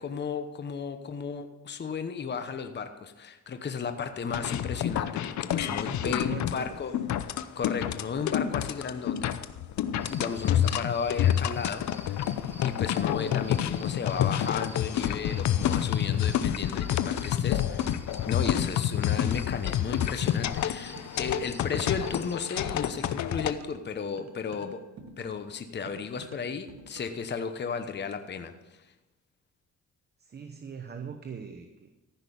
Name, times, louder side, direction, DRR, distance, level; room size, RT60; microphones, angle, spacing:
voice 1, 0.0-5.1 5.4-6.9 7.3-9.3 10.1-12.3 12.6-24.8 25.2-28.5, left 6 dB, 35° left, 8 dB, 1.0 m, -34 dB
sound 1, 4.3-23.5, left 10 dB, 70° left, 0.7 m, -28 dB
voice 2, 5.3-6.8 13.8-13.9 30.2-31.9, right 6 dB, 35° right, 7 dB, 1.0 m, -42 dB
sound 2, 10.0-22.4, right 1 dB, 5° right, 1.1 m, -50 dB
sound 3, 21.0-22.3 22.6-27.3, right 5 dB, 60° right, 1.3 m, -50 dB
14.5 x 6.0 x 7.0 m, 1.0 s
cardioid pair, 90°, 30 cm